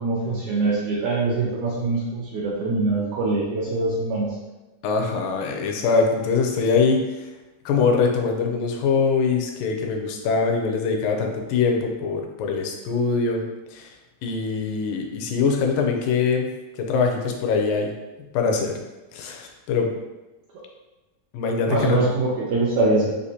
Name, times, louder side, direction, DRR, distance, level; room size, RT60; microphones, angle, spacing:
voice 1, 0.0-4.3 21.7-23.1, right 3 dB, 80° right, -6 dB, 1.8 m, -23 dB
voice 2, 4.8-7.3 7.7-13.4 13.7-13.9 14.2-16.5 16.7-17.9 18.3-18.8 19.1-19.9 21.3-22.0, left 5 dB, 80° left, 2 dB, 2.1 m, -23 dB
6.3 x 2.5 x 2.7 m, 1.1 s
omnidirectional pair, 4.0 m